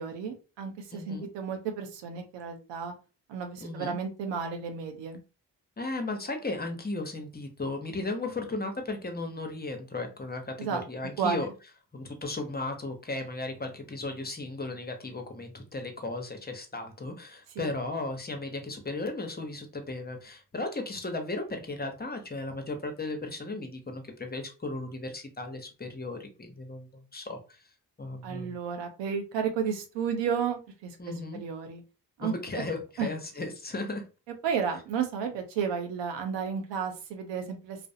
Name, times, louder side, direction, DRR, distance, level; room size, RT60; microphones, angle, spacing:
voice 1, 0.0-2.9 3.3-5.2 10.6-10.8 11.2-11.5 17.6-17.7 28.2-30.9 31.3-31.8 32.2-32.3 33.0-33.1 34.4-37.8, right 6 dB, 85° right, 5 dB, 0.6 m, -32 dB
voice 2, 0.9-1.3 3.6-4.0 5.8-11.5 11.9-27.6 28.0-28.6 31.0-31.4 32.2-34.0, left 2 dB, 25° left, 5 dB, 0.7 m, -36 dB
2.4 x 2.0 x 2.6 m, 0.32 s
supercardioid pair, 40°, 42 cm